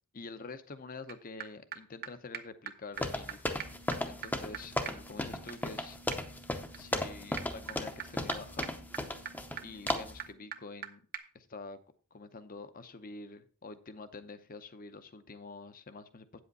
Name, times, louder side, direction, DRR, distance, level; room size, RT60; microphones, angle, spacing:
voice 1, 0.1-3.7 4.0-6.0 6.8-8.7 9.6-11.1 11.3-11.8 12.1-16.4, left 3 dB, 40° left, 12 dB, 0.7 m, -47 dB
sound 1, 1.1-1.2 1.4-1.5 1.7-1.8 2.0-2.1 2.3-2.4 2.7-2.8 3.0-3.1 3.3-3.4 3.6-10.9 11.1-11.2, right 8 dB, 45° right, 0.8 m, -45 dB
sound 2, 3.0-9.6 9.9-10.2, left 1 dB, 10° left, 0.7 m, -35 dB
8.8 x 7.8 x 4.0 m, 0.40 s
head